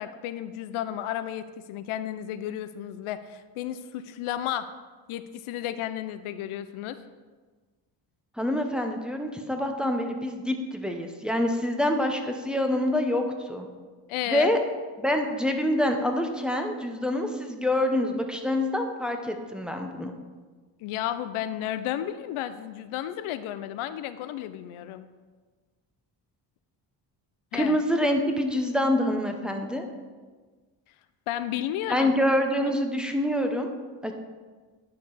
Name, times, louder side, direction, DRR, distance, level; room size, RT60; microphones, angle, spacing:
voice 1, 0.0-4.7 5.1-7.0 14.1-14.5 20.8-25.1 27.5-27.8 31.3-32.1 32.7-32.8, left 11 dB, 80° left, 12 dB, 0.6 m, -33 dB
voice 2, 8.4-13.7 14.3-14.6 15.0-20.1 27.5-29.9 31.9-33.7 34.0-34.1, left 1 dB, ahead, 3 dB, 0.9 m, -26 dB
10.5 x 4.7 x 4.0 m, 1.4 s
cardioid pair, 75°, 48 cm